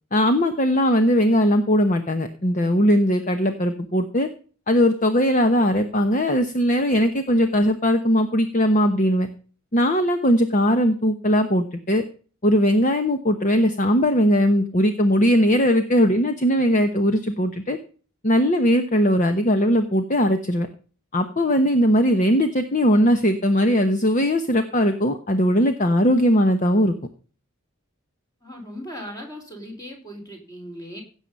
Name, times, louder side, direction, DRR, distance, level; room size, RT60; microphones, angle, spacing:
voice 1, 0.1-4.3 4.7-9.3 9.7-12.0 12.4-17.8 18.2-20.7 21.1-26.9, equal, 35° left, 8 dB, 1.1 m, -19 dB
voice 2, 28.4-31.0, equal, 15° left, 2 dB, 4.3 m, -38 dB
16.5 x 7.4 x 5.4 m, 0.40 s
head